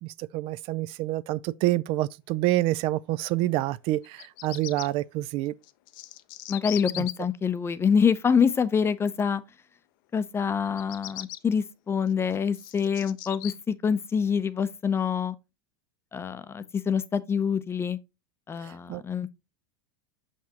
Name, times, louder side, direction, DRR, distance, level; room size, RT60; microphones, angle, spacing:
voice 1, 0.0-5.5 6.9-7.0 18.6-19.0, right 16 dB, 50° right, 0.4 m, -27 dB
Bird vocalization bird call bird song, 4.0-4.9 5.6-7.1 10.6-11.4 12.1-13.5, left 16 dB, 60° left, 0.6 m, -38 dB
voice 2, 6.5-9.4 10.1-15.3 16.1-18.0 18.5-19.3, left 6 dB, 20° left, 0.6 m, -26 dB
6.2 x 5.9 x 2.8 m
hypercardioid pair, 105°, 12 cm